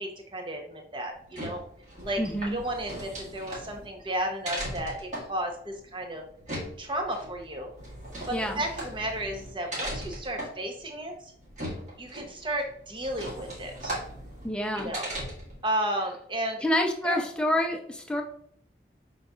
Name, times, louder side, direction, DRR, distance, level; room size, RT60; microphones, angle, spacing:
voice 1, 0.0-1.6 2.0-2.2 2.5-6.2 6.8-7.7 8.3-11.3 12.0-14.0 14.7-15.1 15.6-16.6 17.0-17.2, right 1 dB, 30° right, 2 dB, 0.8 m, -33 dB
sound 1, 1.1-15.6, right 1 dB, 45° right, 1.5 m, -39 dB
voice 2, 2.2-2.6 8.3-8.6 14.4-14.9 16.6-18.2, left 1 dB, 5° left, 1 dB, 0.5 m, -28 dB
5.7 x 3.8 x 2.3 m, 0.64 s
head